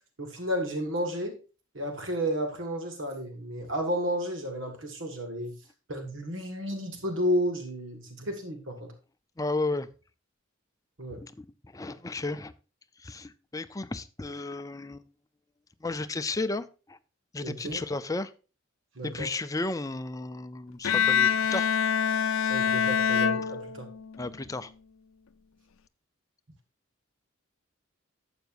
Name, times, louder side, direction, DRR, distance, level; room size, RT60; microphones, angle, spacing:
voice 1, 0.2-1.3 1.7-5.5 5.9-8.9 11.0-11.2 17.4-17.8 19.0-19.3 22.5-23.9, equal, 65° right, 5 dB, 1.7 m, -32 dB
voice 2, 9.4-9.9 11.2-12.5 13.0-15.1 15.8-17.0 17.3-18.3 19.0-21.7 24.2-24.7, left 2 dB, 15° left, 12 dB, 0.5 m, -33 dB
Bowed string instrument, 20.8-24.2, left 7 dB, 85° left, 0.5 m, -25 dB
12.0 x 8.0 x 2.6 m, 0.33 s
head